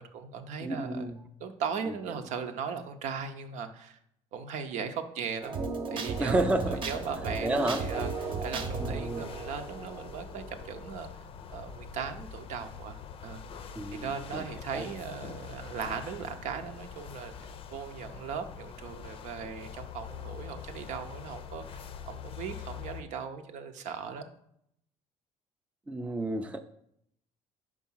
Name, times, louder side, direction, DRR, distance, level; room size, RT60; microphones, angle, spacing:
voice 1, 0.0-1.1 1.4-4.0 4.3-5.6 5.9-11.2 11.5-13.4 13.9-24.3, right 6 dB, 70° right, 7 dB, 0.8 m, -38 dB
voice 2, 0.6-1.2 6.2-6.8 7.4-7.8 8.8-9.3 13.8-14.4 14.7-14.9 25.9-26.6, right 2 dB, 10° right, 7 dB, 0.4 m, -31 dB
sound 1, 5.4-10.9, right 4 dB, 40° right, 0.9 m, -36 dB
sound 2, 6.0-23.0, left 7 dB, 45° left, 0.5 m, -44 dB
5.3 x 4.8 x 5.5 m, 0.73 s
cardioid pair, 110°, 13 cm